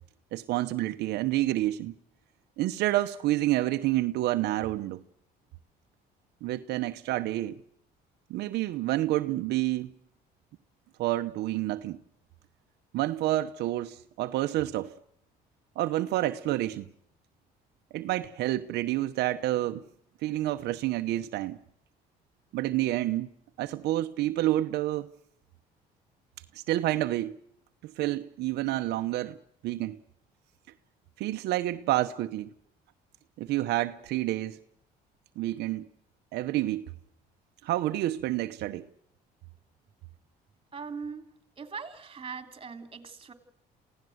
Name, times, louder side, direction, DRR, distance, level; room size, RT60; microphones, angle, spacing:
voice 1, 0.3-1.9 2.6-5.0 6.4-7.6 8.3-9.9 11.0-12.0 12.9-14.9 15.8-16.9 17.9-19.8 20.2-21.6 22.5-23.3 23.6-25.1 26.5-27.4 27.8-29.4 29.6-30.0 31.2-32.5 33.4-34.6 35.4-35.9 36.3-36.9 37.6-38.9, right 15 dB, 80° right, 1.0 m, -29 dB
voice 2, 40.7-41.3 41.6-43.3, right 5 dB, 30° right, 3.3 m, -40 dB
28.0 x 16.5 x 8.0 m
cardioid pair, 110°, 17 cm